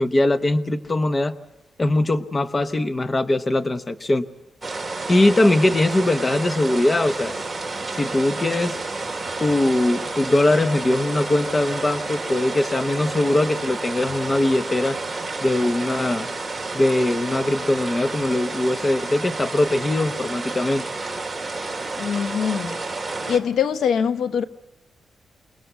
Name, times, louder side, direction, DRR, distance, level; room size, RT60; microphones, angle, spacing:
voice 1, 0.0-1.3 1.8-4.2 5.1-7.4 7.9-8.8 9.4-15.0 15.4-16.3 16.7-20.8, left 2 dB, 20° left, 10 dB, 0.9 m, -21 dB
sound 1, 4.6-23.4, right 3 dB, 10° right, 2.5 m, -30 dB
voice 2, 22.0-22.8 23.3-24.4, left 7 dB, 75° left, 10 dB, 1.0 m, -23 dB
28.5 x 20.5 x 8.2 m, 0.93 s
wide cardioid pair, 155°, 0 cm